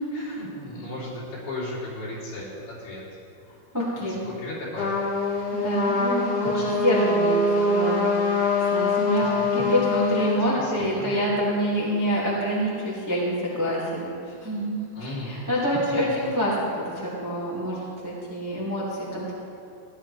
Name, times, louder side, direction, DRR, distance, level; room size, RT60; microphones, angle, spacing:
voice 1, 0.1-3.0 4.2-5.1 5.6-5.7 6.2-6.3 9.2-9.7 10.5-11.2 14.9-15.4, left 1 dB, 75° left, -8 dB, 5.2 m, -36 dB
voice 2, 3.7-4.2 5.5-8.3 8.7-9.2 9.5-18.8 19.1-19.3, equal, 10° right, -7 dB, 1.0 m, -27 dB
Trumpet, 4.8-10.4, left 3 dB, 45° left, 2.2 m, -24 dB
15.5 x 10.5 x 3.4 m, 2.7 s
omnidirectional pair, 4.6 m